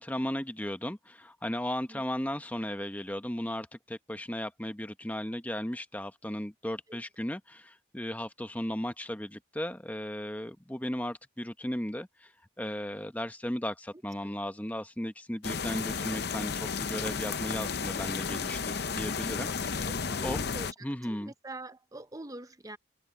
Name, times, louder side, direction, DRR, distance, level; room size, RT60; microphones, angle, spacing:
voice 1, 0.0-12.3 12.6-19.5 20.2-20.4 20.8-21.3, left 1 dB, 10° left, 1.0 m, -36 dB
sound 1, 15.4-20.7, left 5 dB, 55° left, 0.7 m, -33 dB
voice 2, 19.8-22.8, right 2 dB, 20° right, 0.7 m, -45 dB
head